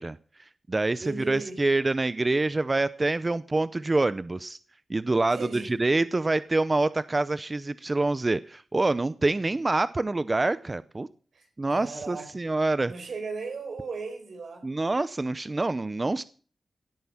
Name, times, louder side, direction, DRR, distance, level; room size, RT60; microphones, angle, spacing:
voice 1, 0.0-4.6 4.9-11.1 11.6-12.9 14.6-16.2, right 2 dB, 35° right, 15 dB, 0.6 m, -26 dB
voice 2, 1.0-1.6 5.3-5.7 11.3-12.3 12.8-14.7, right 4 dB, 85° right, 6 dB, 4.5 m, -37 dB
17.0 x 9.4 x 5.7 m, 0.42 s
cardioid pair, 65°, 0 cm